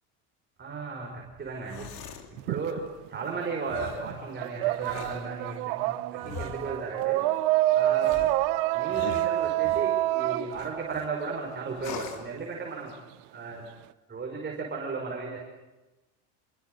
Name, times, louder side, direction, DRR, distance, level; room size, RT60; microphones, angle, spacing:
voice 1, 0.6-7.5 7.7-8.4 8.7-13.0 13.3-13.7 14.1-15.4, right 4 dB, 25° right, -1 dB, 5.5 m, -35 dB
sound 1, 1.5-2.3 3.7-4.1 4.7-5.3 6.2-6.8 8.0-9.9 10.5-11.1 11.8-12.3, left 7 dB, 50° left, 3.2 m, -41 dB
sound 2, 2.4-3.6 3.9-11.7, right 16 dB, 85° right, 1.2 m, -27 dB
27.5 x 23.0 x 8.0 m, 1.1 s
cardioid pair, 140°, 46 cm